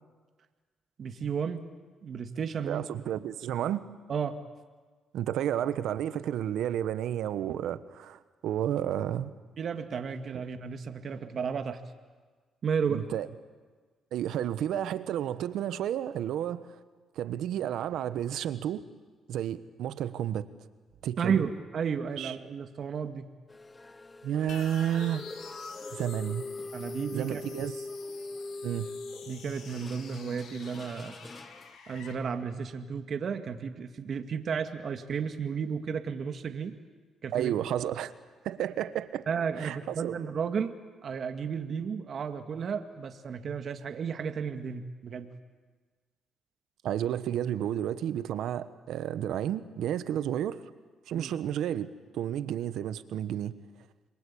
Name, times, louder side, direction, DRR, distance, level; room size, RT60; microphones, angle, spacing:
voice 1, 1.0-1.6 2.0-2.9 4.1-4.4 9.6-11.8 12.6-13.0 21.2-23.3 26.7-27.4 29.3-31.2 31.9-36.7 37.2-37.6 39.3-40.8 41.0-45.3 51.1-51.3, right 6 dB, 55° right, 7 dB, 2.0 m, -33 dB
voice 2, 2.6-3.8 5.1-9.3 12.9-13.3 14.1-16.7 17.2-18.8 19.3-20.5 21.0-21.4 22.2-22.3 24.2-25.2 25.9-26.4 27.1-27.8 28.6-28.9 37.3-38.1 38.4-39.2 39.6-40.1 46.8-50.6 51.1-51.9 52.1-53.5, right 10 dB, 80° right, 13 dB, 1.2 m, -31 dB
sound 1, 23.5-31.8, left 2 dB, 20° left, 0.8 m, -42 dB
sound 2, 24.5-32.1, left 6 dB, 80° left, 3.6 m, -49 dB
28.0 x 22.5 x 8.6 m, 1.4 s
cardioid pair, 90°, 0 cm